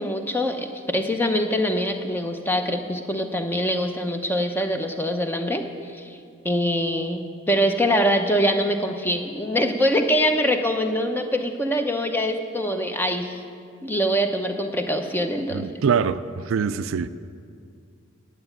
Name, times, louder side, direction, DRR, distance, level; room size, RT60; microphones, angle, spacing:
voice 1, 0.0-6.2 6.4-13.4 13.8-15.7, equal, 10° left, 0.6 m, -24 dB
voice 2, 15.5-17.1, right 6 dB, 75° right, 0.4 m, -24 dB
9.4 x 8.0 x 9.1 m
head